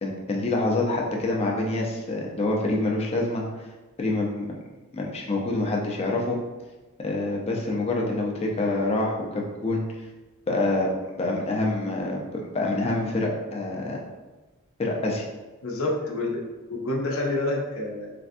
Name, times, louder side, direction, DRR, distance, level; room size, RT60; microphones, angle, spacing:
voice 1, 0.0-3.4 4.0-4.6 4.9-6.4 7.0-9.8 10.5-10.9 11.2-14.0 14.8-15.3, left 2 dB, 30° left, -1 dB, 0.4 m, -26 dB
voice 2, 15.6-18.1, left 2 dB, 75° left, -1 dB, 0.6 m, -28 dB
3.3 x 2.5 x 2.5 m, 1.2 s
head